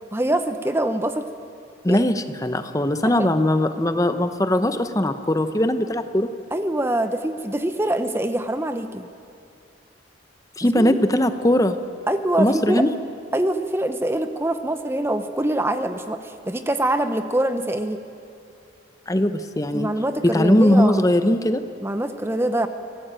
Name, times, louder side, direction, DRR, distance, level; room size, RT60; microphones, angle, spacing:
voice 1, 0.1-1.3 1.9-2.1 3.0-3.3 6.5-9.1 10.6-11.0 12.1-12.8 13.3-18.0 19.7-21.0 21.8-22.7, right 1 dB, 15° right, 9 dB, 0.8 m, -24 dB
voice 2, 1.8-6.3 10.6-11.8 12.4-12.9 19.1-19.9 20.2-21.6, left 1 dB, 15° left, 9 dB, 0.8 m, -20 dB
25.0 x 18.0 x 9.0 m, 2.5 s
head